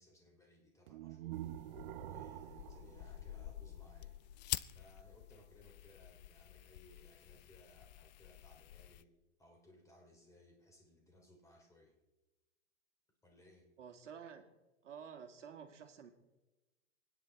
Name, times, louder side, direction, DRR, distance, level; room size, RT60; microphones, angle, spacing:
voice 1, 0.0-4.2 4.7-9.1 9.4-12.0 13.2-13.7, left 1 dB, 10° left, 1 dB, 3.3 m, -64 dB
sound 1, 0.9-4.0, right 15 dB, 45° right, 0.5 m, -48 dB
sound 2, 1.3-9.0, left 15 dB, 40° left, 0.4 m, -48 dB
voice 2, 13.8-14.4 14.8-16.1, right 7 dB, 80° right, 6 dB, 2.1 m, -51 dB
27.5 x 10.0 x 3.5 m, 1.1 s
hypercardioid pair, 130°, 36 cm